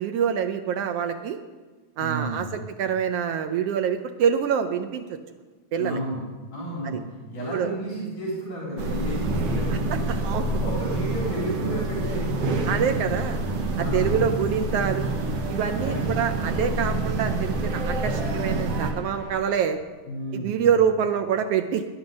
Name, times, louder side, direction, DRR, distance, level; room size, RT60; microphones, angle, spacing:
voice 1, 0.0-1.4 2.0-2.5 2.8-5.2 5.7-6.0 6.8-7.0 7.5-7.7 10.1-10.4 12.7-13.4 13.8-15.1 15.5-19.8 20.3-21.8, right 8 dB, 85° right, 7 dB, 1.3 m, -25 dB
voice 2, 2.0-2.6 5.8-6.2 6.5-13.1 13.7-14.2 15.8-16.0 16.6-17.1 20.1-20.7, right 1 dB, 70° left, -5 dB, 4.9 m, -32 dB
sound 1, 8.8-18.9, right 2 dB, 60° right, 2.1 m, -27 dB
sound 2, 12.9-19.4, equal, 20° right, 1.8 m, -44 dB
20.0 x 9.9 x 5.3 m, 1.4 s
omnidirectional pair, 3.6 m